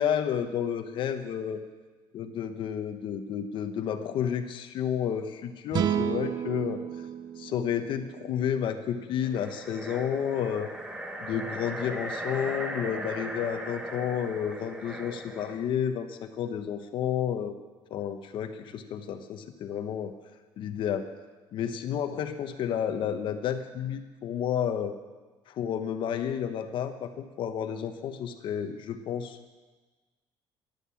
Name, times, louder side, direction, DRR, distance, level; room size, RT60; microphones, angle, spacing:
voice 1, 0.0-1.6 2.1-6.8 7.4-10.7 11.2-17.5 17.9-20.1 20.6-21.1 21.5-25.0 25.5-29.4, left 8 dB, 60° left, 8 dB, 1.0 m, -31 dB
sound 1, 5.7-9.0, right 9 dB, 45° right, 0.8 m, -32 dB
sound 2, 9.2-15.7, right 1 dB, 10° right, 1.5 m, -38 dB
13.5 x 12.0 x 7.1 m, 1.3 s
cardioid pair, 145°, 10 cm